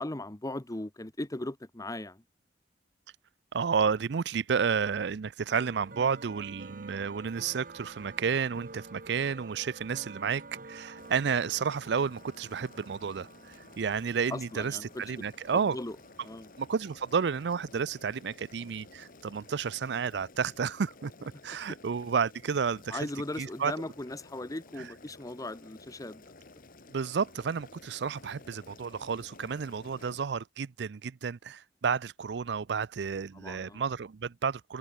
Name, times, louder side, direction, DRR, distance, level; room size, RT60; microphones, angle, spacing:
voice 1, 0.0-2.2 14.3-15.2 15.5-16.0 16.2-16.5 22.9-26.3 33.3-33.8, left 1 dB, 20° left, 1.0 m, -38 dB
voice 2, 3.5-13.3 13.8-15.8 16.6-21.1 21.4-23.1 23.4-23.7 26.9-34.8, right 6 dB, 70° right, 0.5 m, -31 dB
sound 1, 5.5-21.5, right 3 dB, 50° right, 2.8 m, -51 dB
Boiling, 11.0-30.2, left 3 dB, 50° left, 1.9 m, -54 dB
head